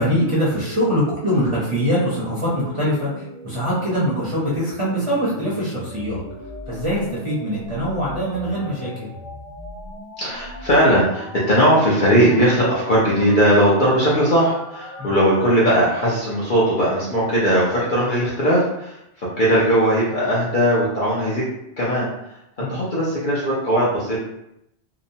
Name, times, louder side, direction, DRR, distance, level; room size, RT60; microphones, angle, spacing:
voice 1, 0.0-6.2 6.7-9.1 15.0-15.1 22.6-22.8, equal, 30° right, -9 dB, 0.7 m, -23 dB
sound 1, 0.6-15.6, left 1 dB, 15° left, 0.7 m, -38 dB
voice 2, 10.2-21.4 21.8-22.1 22.6-24.2, equal, 50° left, -7 dB, 0.7 m, -18 dB
2.9 x 2.0 x 2.6 m, 0.82 s
omnidirectional pair, 1.3 m